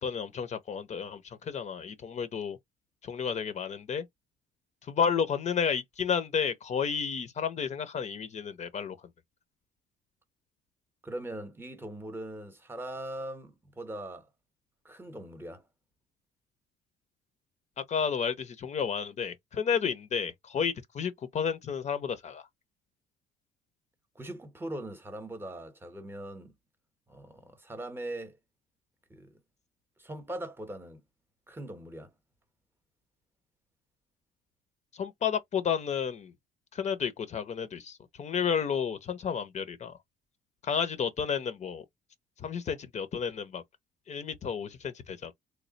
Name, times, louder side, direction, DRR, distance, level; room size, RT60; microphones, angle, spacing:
voice 1, 0.0-2.6 3.0-4.0 4.9-9.0 17.9-22.5 34.9-36.3 36.7-40.0 40.6-41.8 42.4-43.6 44.1-45.3, left 7 dB, 40° left, 0.7 m, -31 dB
voice 2, 11.0-14.3 14.8-15.6 24.1-26.6 27.1-28.4 29.1-29.3 30.0-31.0 31.5-32.1, right 1 dB, 15° right, 0.9 m, -40 dB
3.2 x 2.2 x 3.9 m
cardioid pair, 110°, 17 cm